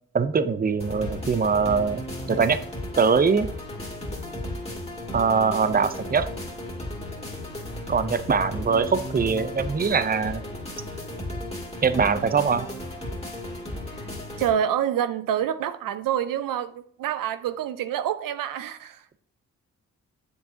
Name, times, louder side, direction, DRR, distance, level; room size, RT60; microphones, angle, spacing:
voice 1, 0.1-2.0 2.3-2.6 3.0-3.5 5.1-6.3 7.9-10.4 11.8-12.7, right 5 dB, 25° right, 0.6 m, -22 dB
sound 1, 0.8-14.5, left 1 dB, 20° left, 2.4 m, -35 dB
voice 2, 14.4-19.0, right 9 dB, 70° right, 0.5 m, -27 dB
7.6 x 6.9 x 2.8 m
supercardioid pair, 40°, 34 cm